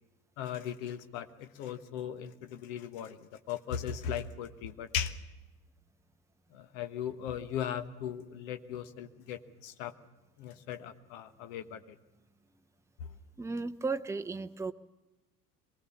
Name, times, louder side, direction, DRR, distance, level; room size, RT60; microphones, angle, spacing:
voice 1, 0.4-5.2 6.5-9.9 10.4-12.0 13.0-13.1, left 9 dB, 55° left, 10 dB, 1.4 m, -38 dB
voice 2, 13.4-14.7, right 4 dB, 5° right, 8 dB, 0.7 m, -34 dB
23.5 x 18.5 x 7.2 m, 1.1 s
figure-of-eight pair, 60°, 48 cm